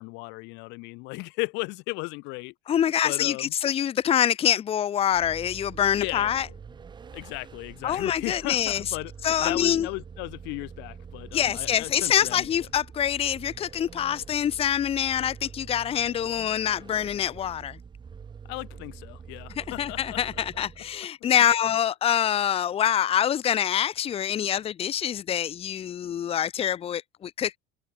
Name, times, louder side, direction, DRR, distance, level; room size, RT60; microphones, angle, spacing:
voice 1, 0.0-2.5 3.0-3.5 6.0-6.3 7.1-12.5 18.5-20.2, left 26 dB, 70° left, 2.4 m, -35 dB
voice 2, 2.7-6.5 7.8-9.0 9.2-9.9 11.3-17.8 19.5-27.6, left 10 dB, 30° left, 1.1 m, -25 dB
Vehicle, 5.1-21.0, right 6 dB, 25° right, 3.9 m, -45 dB
open air
cardioid pair, 140°, 19 cm